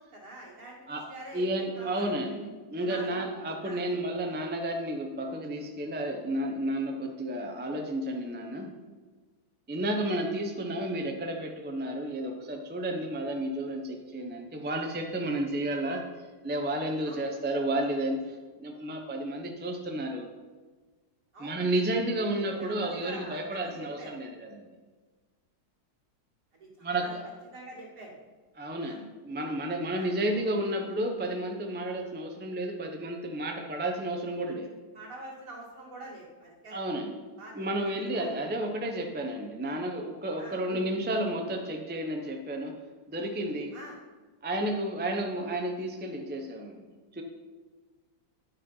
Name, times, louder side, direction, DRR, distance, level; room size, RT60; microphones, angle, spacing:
voice 1, 0.0-2.1 2.8-3.1 3.6-3.8 17.0-17.2 21.3-21.6 22.3-24.1 26.5-27.2 27.5-28.2 28.8-29.0 29.9-30.1 34.9-36.8 37.4-37.5 37.8-38.3 40.4-40.6 43.7-44.0, right 1 dB, 55° right, -4 dB, 2.6 m, -45 dB
voice 2, 1.3-8.7 9.7-16.0 16.4-20.3 21.4-24.6 26.8-27.3 28.6-34.7 36.7-37.1 37.5-42.7 43.1-43.7 44.4-46.9 47.1-47.2, right 1 dB, 10° right, 2 dB, 0.5 m, -32 dB
9.8 x 5.7 x 5.5 m, 1.4 s
omnidirectional pair, 1.7 m